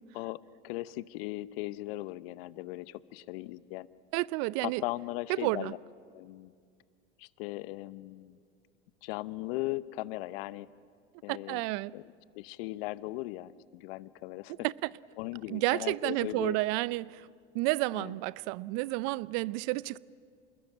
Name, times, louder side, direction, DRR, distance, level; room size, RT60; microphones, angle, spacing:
voice 1, 0.1-3.9 4.6-5.8 6.1-6.5 7.2-8.4 9.0-10.7 11.2-11.6 11.9-12.0 12.3-14.5 15.2-16.6 17.9-18.2, left 18 dB, 65° left, 0.9 m, -38 dB
voice 2, 4.1-4.8 5.3-5.7 11.3-11.9 14.6-14.9 15.5-17.3 17.5-20.0, right 21 dB, 60° right, 0.6 m, -31 dB
27.5 x 20.5 x 8.9 m
hypercardioid pair, 90°, 32 cm